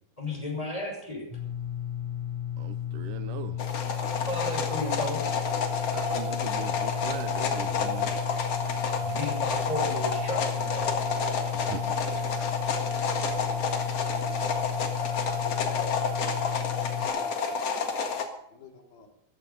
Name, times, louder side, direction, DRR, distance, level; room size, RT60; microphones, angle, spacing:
voice 1, 0.2-1.3 3.6-3.7 4.0-5.2 9.0-11.0 15.8-15.9, left 1 dB, 10° left, 5.7 m, -34 dB
sound 1, 1.3-17.1, left 10 dB, 40° right, 5.0 m, -34 dB
voice 2, 2.6-3.6 5.9-8.1 11.5-12.0 12.9-13.1, right 8 dB, 75° right, 2.4 m, -40 dB
sound 2, 3.6-18.2, left 5 dB, 50° left, 2.5 m, -30 dB
sound 3, 5.1-17.6, equal, 30° left, 6.7 m, -37 dB
voice 3, 10.2-11.0 16.6-17.4 18.5-19.1, left 4 dB, 80° left, 4.7 m, -52 dB
15.0 x 15.0 x 5.4 m
omnidirectional pair, 4.1 m